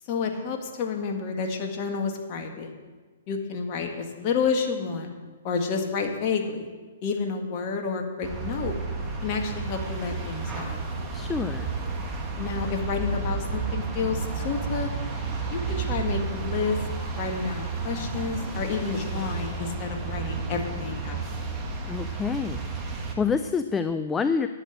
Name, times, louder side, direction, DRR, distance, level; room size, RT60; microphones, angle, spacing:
voice 1, 0.1-2.7 3.3-5.1 5.4-6.7 7.0-8.7 9.2-10.8 12.4-14.9 15.5-16.8 17.1-21.3, left 5 dB, 40° left, 3 dB, 1.9 m, -30 dB
sound 1, 8.2-23.1, right 4 dB, 20° right, 2.0 m, -32 dB
voice 2, 11.1-11.7 21.8-22.6 22.9-24.5, left 5 dB, 15° left, 10 dB, 0.5 m, -27 dB
11.0 x 7.8 x 7.9 m, 1.4 s
hypercardioid pair, 130°, 0 cm